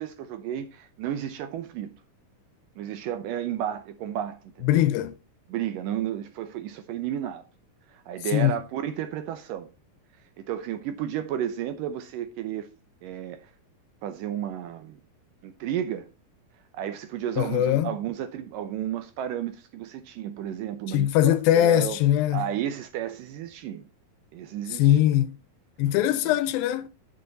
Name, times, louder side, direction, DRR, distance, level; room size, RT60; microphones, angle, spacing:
voice 1, 0.0-1.9 2.8-4.9 5.5-7.4 7.9-9.7 10.4-12.7 13.0-13.5 14.0-15.0 15.4-16.1 16.7-22.0 22.3-23.9 24.3-25.0 26.2-26.3, right 10 dB, 75° right, 2.1 m, -32 dB
voice 2, 4.6-5.2 8.3-8.6 17.4-18.0 20.9-22.4 24.7-25.4 25.8-26.9, left 12 dB, 80° left, 2.3 m, -21 dB
9.6 x 7.1 x 3.9 m
omnidirectional pair, 4.4 m